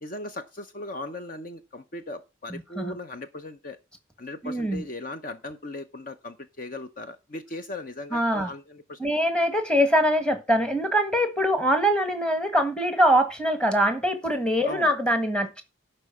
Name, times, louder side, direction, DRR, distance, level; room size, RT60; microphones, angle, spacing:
voice 1, 0.0-3.8 4.2-9.0 14.6-14.9, left 2 dB, 45° left, 0.7 m, -38 dB
voice 2, 2.5-2.9 4.4-4.8 8.1-8.5 9.0-15.6, equal, 5° left, 1.5 m, -23 dB
11.5 x 4.5 x 6.9 m
head